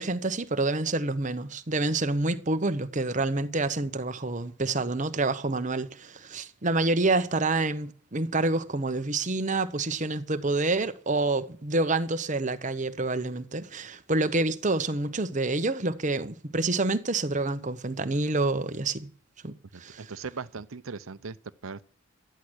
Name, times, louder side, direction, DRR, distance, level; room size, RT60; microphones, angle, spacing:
voice 1, 0.0-19.1 19.4-20.1, right 2 dB, 35° right, 1.0 m, -28 dB
voice 2, 19.7-21.4 21.6-21.8, right 5 dB, 80° right, 0.7 m, -39 dB
13.0 x 10.5 x 6.3 m
head